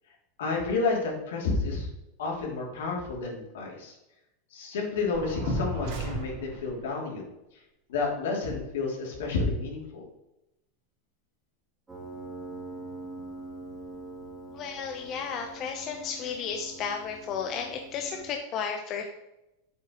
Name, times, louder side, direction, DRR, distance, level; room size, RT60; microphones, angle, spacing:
voice 1, 0.4-1.9 2.2-3.9 4.5-7.2 7.9-10.0, left 3 dB, 80° left, -2 dB, 3.0 m, -30 dB
sound 1, 5.1-6.8, right 2 dB, 60° right, 3.3 m, -35 dB
Piano, 11.9-18.4, right 2 dB, 20° right, 2.8 m, -43 dB
voice 2, 14.5-19.1, left 6 dB, 45° left, 4 dB, 0.9 m, -33 dB
8.3 x 8.0 x 3.1 m, 0.92 s
hypercardioid pair, 110°, 0 cm